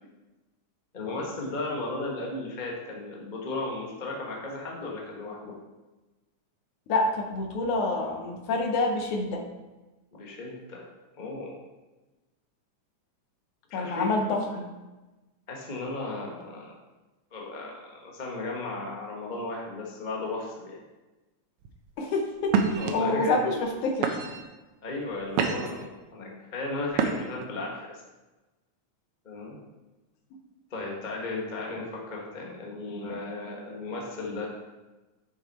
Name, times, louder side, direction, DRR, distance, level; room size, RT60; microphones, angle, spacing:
voice 1, 0.9-5.5 10.1-10.8 11.2-11.6 13.7-14.5 15.5-16.8 17.3-20.8 22.8-23.4 24.8-28.0 29.2-29.6 30.7-34.5, left 2 dB, 35° left, -2 dB, 0.6 m, -35 dB
voice 2, 6.9-9.4 13.7-14.7 22.0-24.2, left 2 dB, 75° left, 3 dB, 2.4 m, -27 dB
sound 1, 21.6-21.9 22.5-22.9 23.6-23.7 24.0-24.5 25.0-25.8 26.9-27.4, right 6 dB, 85° right, 1.2 m, -27 dB
7.3 x 6.8 x 4.3 m, 1.1 s
omnidirectional pair, 3.5 m